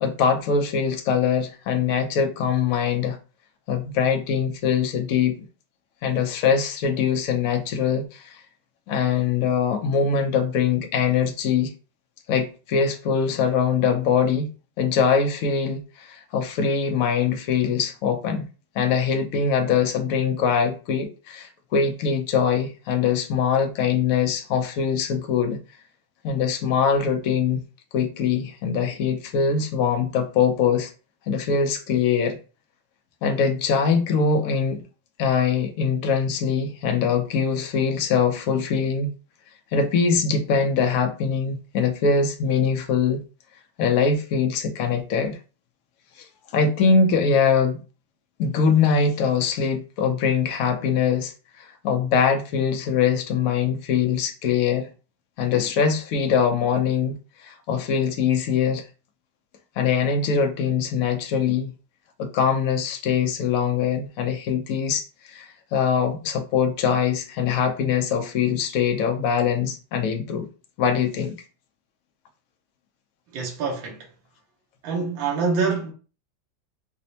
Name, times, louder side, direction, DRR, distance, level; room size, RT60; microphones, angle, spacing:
voice 1, 0.0-3.2 3.7-5.4 6.0-8.4 8.9-11.7 12.3-18.4 18.8-25.6 26.2-27.6 27.9-30.9 31.3-32.4 33.2-34.8 35.2-39.1 39.7-43.2 43.8-45.4 46.2-46.3 46.5-47.8 48.4-54.9 55.4-57.2 57.4-58.8 59.8-61.7 62.2-70.5 70.8-71.3, left 6 dB, 70° left, 0.8 m, -22 dB
voice 2, 73.3-74.1 74.8-75.9, right 4 dB, 80° right, 1.6 m, -25 dB
5.0 x 2.1 x 2.7 m
omnidirectional pair, 2.0 m